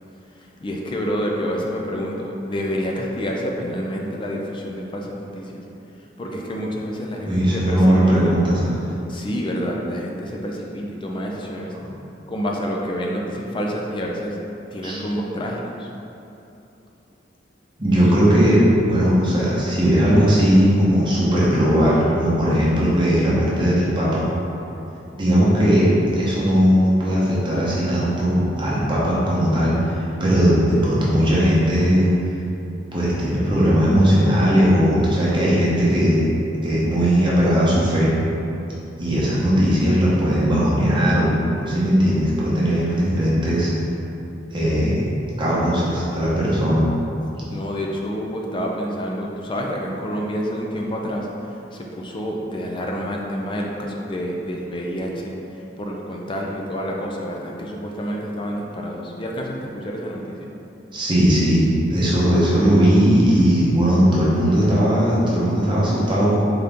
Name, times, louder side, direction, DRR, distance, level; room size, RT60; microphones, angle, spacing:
voice 1, 0.4-5.6 6.2-8.3 9.1-11.7 12.3-14.4 14.7-15.9 17.9-18.0 47.5-51.3 51.7-55.3 55.8-60.5, equal, 30° left, -1 dB, 0.4 m, -28 dB
voice 2, 7.3-8.8 14.8-15.0 17.8-24.2 25.1-32.1 32.9-36.3 36.6-38.1 39.0-43.7 44.5-45.0 45.4-46.9 60.9-66.4, equal, 25° right, -7 dB, 0.8 m, -18 dB
3.8 x 2.8 x 3.5 m, 2.9 s
head